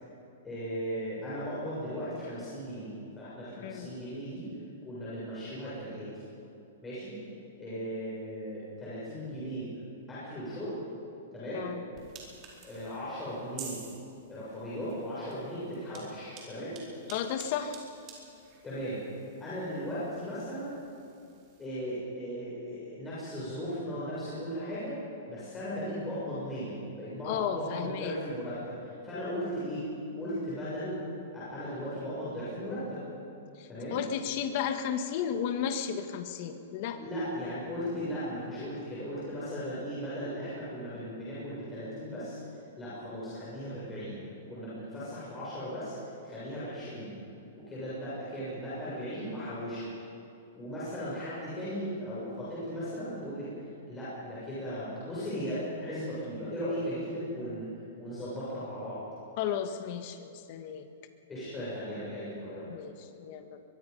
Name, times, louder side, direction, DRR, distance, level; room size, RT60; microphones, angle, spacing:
voice 1, 0.4-2.9 3.2-4.5 4.8-6.1 6.8-7.2 7.6-9.7 10.1-10.8 11.3-11.7 12.6-13.8 14.3-16.8 18.6-19.0 19.4-20.8 21.6-25.0 25.3-29.8 30.2-31.0 31.3-33.1 33.7-34.0 36.9-42.4 42.8-44.2 44.5-47.1 47.5-49.9 50.5-53.5 53.9-57.7 58.0-59.0 61.3-62.7, equal, 10° left, -10 dB, 7.1 m, -37 dB
voice 2, 3.6-3.9 11.5-11.8 17.1-17.8 27.3-28.2 33.6-37.0 59.4-60.9 62.7-63.6, left 8 dB, 45° left, 7 dB, 1.6 m, -34 dB
sound 1, 11.9-21.7, right 5 dB, 30° right, 4.6 m, -51 dB
23.0 x 23.0 x 5.5 m, 2.7 s
hypercardioid pair, 155°, 0 cm